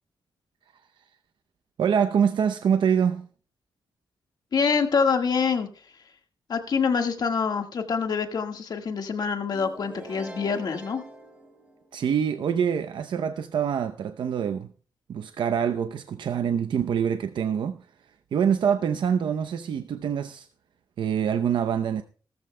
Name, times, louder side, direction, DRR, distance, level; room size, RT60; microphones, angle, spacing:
voice 1, 1.8-3.3 11.9-14.7 15.1-17.8 18.3-20.5 21.0-22.0, right 7 dB, 75° right, 0.6 m, -25 dB
voice 2, 4.5-5.7 6.5-11.0, left 5 dB, 55° left, 1.6 m, -25 dB
sound 1, 9.5-12.3, right 1 dB, 15° right, 4.2 m, -43 dB
18.0 x 13.5 x 2.2 m
wide cardioid pair, 115°, 8 cm